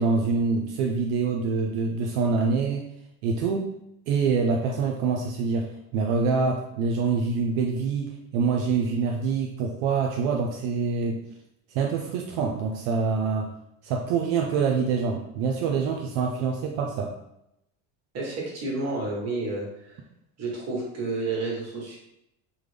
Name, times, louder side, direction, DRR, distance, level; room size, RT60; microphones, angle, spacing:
voice 1, 0.0-2.9 3.2-3.7 4.1-11.2 11.7-13.5 13.8-17.1, right 5 dB, 80° right, 1 dB, 0.5 m, -25 dB
voice 2, 18.1-20.0 20.4-22.0, right 2 dB, 40° right, -3 dB, 1.3 m, -30 dB
3.4 x 2.1 x 3.2 m, 0.82 s
cardioid pair, 120°, 38 cm